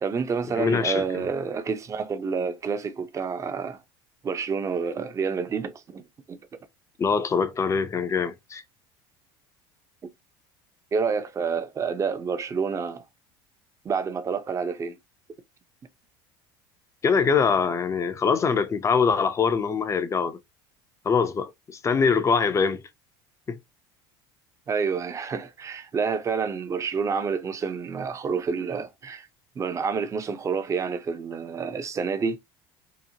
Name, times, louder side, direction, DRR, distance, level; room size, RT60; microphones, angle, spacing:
voice 1, 0.0-3.8 4.2-6.0 6.3-6.4 10.9-13.0 13.8-15.0 24.7-29.3 29.6-32.4, right 5 dB, 25° right, 0.5 m, -28 dB
voice 2, 0.6-1.2 7.0-8.6 17.0-20.4 21.1-22.8 23.5-23.6, left 5 dB, 25° left, 0.4 m, -23 dB
2.9 x 2.1 x 2.7 m
supercardioid pair, 100°, 12 cm